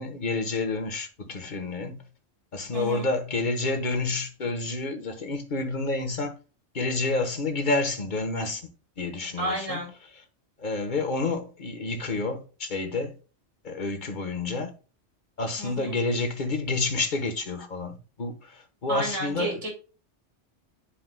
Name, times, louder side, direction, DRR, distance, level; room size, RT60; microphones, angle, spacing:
voice 1, 0.0-2.0 2.5-6.3 6.7-8.6 9.0-9.8 10.6-13.1 13.6-14.7 15.4-19.6, left 3 dB, 45° left, 1.3 m, -29 dB
voice 2, 2.7-3.1 9.4-9.9 15.6-16.0 18.9-19.7, right 1 dB, 75° right, 2.8 m, -31 dB
11.5 x 4.7 x 2.2 m
omnidirectional pair, 1.2 m